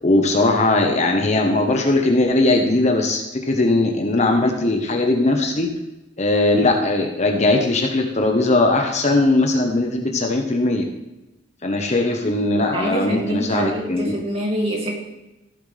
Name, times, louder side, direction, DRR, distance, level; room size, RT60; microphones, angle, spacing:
voice 1, 0.0-5.7 6.2-10.8 11.6-14.1, left 2 dB, 35° left, 3 dB, 1.1 m, -19 dB
voice 2, 12.5-15.0, right 1 dB, 30° right, -2 dB, 2.4 m, -25 dB
15.0 x 7.9 x 3.4 m, 0.98 s
head